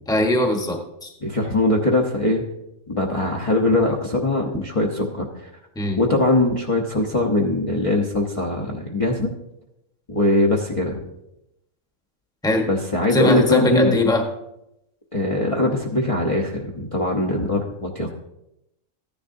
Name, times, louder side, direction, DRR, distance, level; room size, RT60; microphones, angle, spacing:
voice 1, 0.1-1.1 5.8-6.0 12.4-12.7 13.1-14.2, left 1 dB, 5° left, 3 dB, 1.0 m, -21 dB
voice 2, 1.2-2.4 2.9-5.5 6.0-9.3 10.1-11.0 12.7-13.9 15.1-18.1, left 2 dB, 30° left, -2 dB, 0.8 m, -21 dB
14.5 x 10.5 x 2.7 m, 0.86 s
omnidirectional pair, 1.5 m